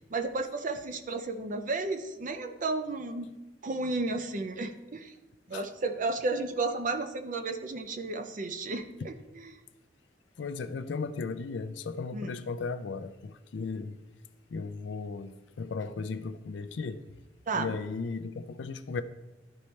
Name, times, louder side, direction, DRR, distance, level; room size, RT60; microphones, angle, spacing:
voice 1, 0.1-3.3 3.6-5.1 5.5-9.5 12.1-12.3 17.5-17.8, right 3 dB, 45° right, 8 dB, 0.5 m, -33 dB
voice 2, 10.4-14.0 14.5-17.0 17.5-19.0, left 4 dB, 80° left, 10 dB, 0.4 m, -36 dB
11.5 x 4.2 x 3.2 m, 1.1 s
head